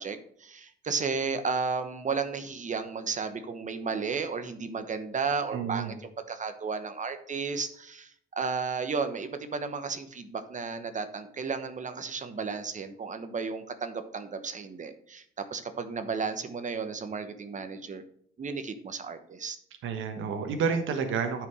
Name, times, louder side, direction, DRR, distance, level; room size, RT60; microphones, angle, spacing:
voice 1, 0.0-5.9 6.3-8.1 8.4-18.0 18.4-19.6, right 5 dB, 40° right, 9 dB, 1.0 m, -33 dB
voice 2, 5.5-5.9 19.8-21.5, right 6 dB, 80° right, 6 dB, 1.2 m, -30 dB
9.4 x 5.1 x 4.8 m, 0.63 s
cardioid pair, 90°, 20 cm